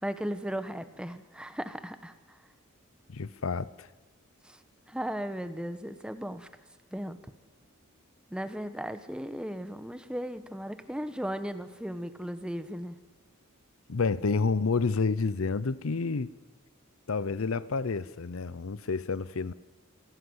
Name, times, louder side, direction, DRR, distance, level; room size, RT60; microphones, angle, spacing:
voice 1, 0.0-2.4 4.4-4.6 4.9-6.5 6.9-7.2 8.3-13.0, equal, 5° right, 1.1 m, -36 dB
voice 2, 3.1-3.9 13.9-16.3 17.1-19.5, left 4 dB, 75° left, 0.6 m, -29 dB
28.5 x 17.0 x 8.0 m
head